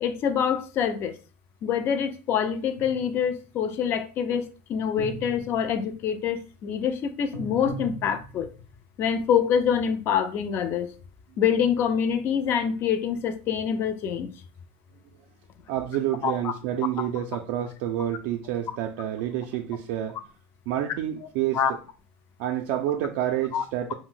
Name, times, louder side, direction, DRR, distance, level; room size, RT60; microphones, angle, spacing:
voice 1, 0.0-1.1 1.6-8.5 9.0-10.9 11.4-14.3 16.2-16.5 21.5-21.7 23.5-23.6, left 8 dB, 40° left, 0.4 m, -25 dB
sound 1, 2.7-3.3 5.0-6.0 7.3-8.6, right 2 dB, 80° left, 0.8 m, -39 dB
voice 2, 15.7-20.2 20.7-21.6 22.4-23.9, right 11 dB, 65° right, 0.3 m, -28 dB
2.5 x 2.1 x 3.7 m
supercardioid pair, 140°, 6 cm